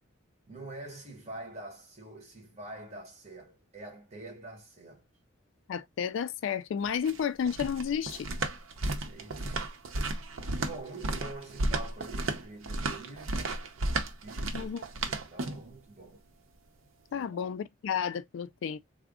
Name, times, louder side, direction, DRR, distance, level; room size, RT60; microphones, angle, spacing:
voice 1, 0.5-5.1 9.0-9.6 10.6-13.5 14.0-14.7 15.0-16.2 17.1-17.4, right 2 dB, 35° right, 1.3 m, -46 dB
voice 2, 5.7-8.3 14.5-14.8 17.1-18.8, left 7 dB, 70° left, 0.3 m, -32 dB
sound 1, 6.8-15.7, right 2 dB, 85° right, 0.7 m, -33 dB
3.5 x 2.0 x 3.5 m
head